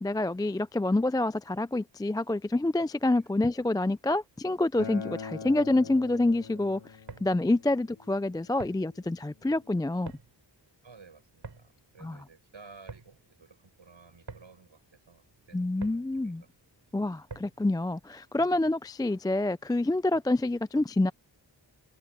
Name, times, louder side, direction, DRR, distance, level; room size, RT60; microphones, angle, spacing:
voice 1, 0.0-6.8 7.2-10.1 12.0-12.2 15.5-16.4 16.9-21.1, left 2 dB, 10° left, 0.3 m, -27 dB
Acoustic guitar, 4.8-10.0, left 5 dB, 90° left, 4.4 m, -44 dB
sound 1, 6.9-17.7, right 4 dB, 65° right, 5.1 m, -50 dB
voice 2, 10.8-16.5, right 4 dB, 80° right, 6.7 m, -54 dB
wide cardioid pair, 55°, 45 cm